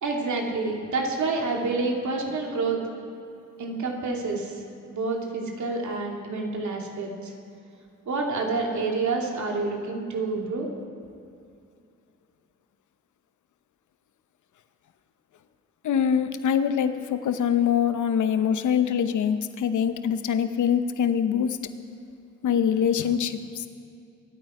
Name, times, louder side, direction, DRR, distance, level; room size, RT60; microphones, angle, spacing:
voice 1, 0.0-2.8 3.6-4.6 4.9-7.3 8.1-10.7, right 3 dB, 65° right, 0 dB, 2.6 m, -28 dB
voice 2, 15.8-21.6 22.4-23.7, left 8 dB, 70° left, 10 dB, 0.9 m, -24 dB
24.0 x 9.0 x 4.9 m, 2.5 s
supercardioid pair, 45°, 31 cm